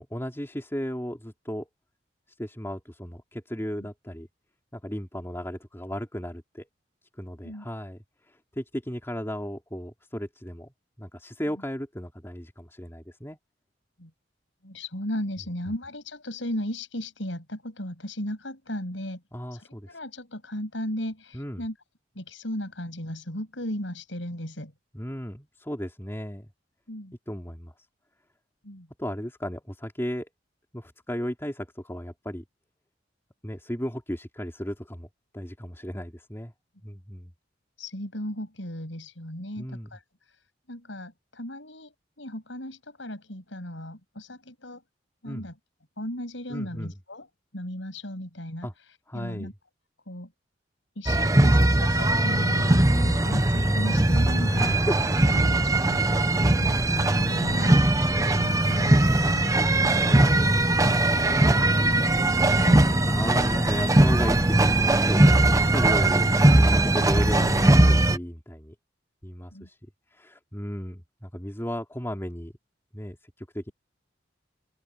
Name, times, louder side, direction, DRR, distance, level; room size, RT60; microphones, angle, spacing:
voice 1, 0.0-1.7 2.4-4.3 4.7-6.7 7.2-8.0 8.3-10.7 11.0-13.4 15.7-15.8 19.3-20.0 21.3-21.7 24.9-26.5 27.3-27.7 29.0-30.3 30.7-32.4 33.4-35.1 35.3-36.5 36.8-37.3 39.5-39.9 45.2-45.5 46.5-47.0 48.6-48.7 49.1-49.5 54.5-55.0 56.3-56.6 63.0-68.8 69.2-69.8 70.1-72.5 72.9-73.7, equal, 15° left, 3.7 m, -35 dB
voice 2, 14.6-19.2 19.5-21.8 22.2-24.7 26.9-27.1 28.6-28.9 37.8-40.4 40.7-44.8 45.2-45.5 46.0-47.3 47.5-48.7 49.1-49.5 50.1-50.3 51.0-54.9 55.3-56.3 56.6-62.9 69.5-69.7, left 1 dB, 85° left, 7.3 m, -36 dB
sound 1, 51.1-68.2, right 1 dB, 20° right, 0.8 m, -20 dB
sound 2, 52.9-67.8, left 1 dB, 30° left, 2.5 m, -38 dB
open air
head